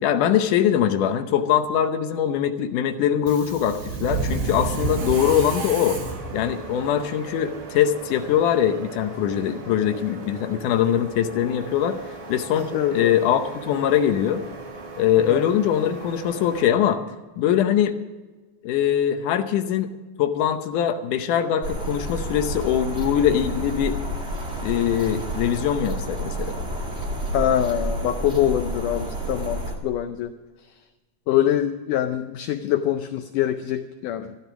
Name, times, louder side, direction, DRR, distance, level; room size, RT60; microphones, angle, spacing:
voice 1, 0.0-6.0 6.3-12.0 12.3-14.4 15.0-17.0 17.4-17.9 18.6-19.9 20.2-24.0 24.6-26.6, left 9 dB, 70° left, 8 dB, 2.1 m, -22 dB
Subway metro underground, 3.2-16.7, right 3 dB, 75° right, 4.2 m, -34 dB
voice 2, 12.7-13.1 15.3-15.4 27.3-30.3 31.3-34.4, left 11 dB, 90° left, 9 dB, 1.8 m, -24 dB
sound 1, 21.6-29.7, right 1 dB, 25° right, 1.4 m, -30 dB
14.5 x 12.5 x 6.1 m, 1.2 s
omnidirectional pair, 4.5 m